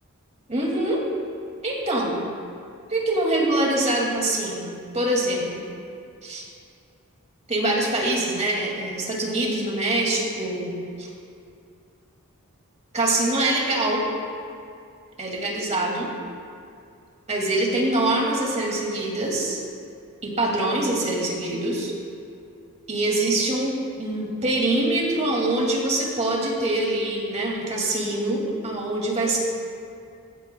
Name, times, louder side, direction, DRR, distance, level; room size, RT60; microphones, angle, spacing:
voice 1, 0.5-1.0 1.6-2.2 2.9-4.7 4.9-5.7 6.2-6.5 7.5-10.7 11.0-11.1 12.9-14.0 15.2-16.1 17.3-19.6 20.2-21.9 22.9-29.4, right 1 dB, 30° right, -2 dB, 2.3 m, -24 dB
17.5 x 15.5 x 2.3 m, 2.4 s
head